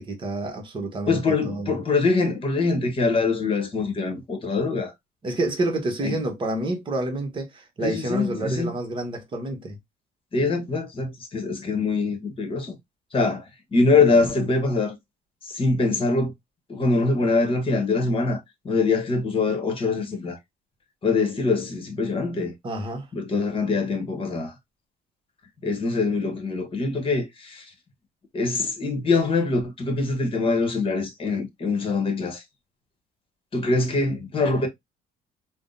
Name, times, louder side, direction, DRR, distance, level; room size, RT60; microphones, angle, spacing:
voice 1, 0.0-1.8 5.2-9.8 22.6-23.1, right 2 dB, 30° right, 1.0 m, -29 dB
voice 2, 1.1-4.9 6.0-6.1 7.8-8.7 10.3-12.7 13.1-13.4 13.7-15.0 15.5-16.3 16.7-18.4 18.6-20.4 21.0-22.5 23.1-24.5 25.6-27.6 28.3-32.4 33.5-34.7, left 3 dB, 30° left, 1.1 m, -23 dB
3.5 x 2.2 x 2.5 m
cardioid pair, 110°, 17 cm